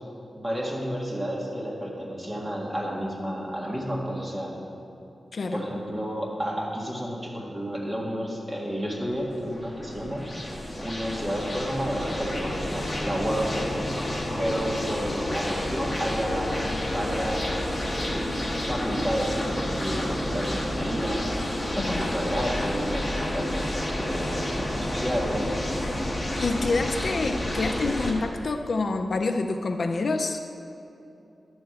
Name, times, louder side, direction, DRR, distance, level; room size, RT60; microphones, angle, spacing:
voice 1, 0.3-4.5 5.5-10.3 10.8-14.1 14.4-18.3 18.7-25.6, equal, 15° right, -3 dB, 1.6 m, -31 dB
voice 2, 5.3-5.6 21.8-22.0 26.4-30.4, left 3 dB, 50° left, 6 dB, 0.4 m, -27 dB
sound 1, 9.0-28.1, left 1 dB, 20° left, 1.3 m, -30 dB
11.0 x 4.4 x 7.7 m, 2.8 s
wide cardioid pair, 130°, 0 cm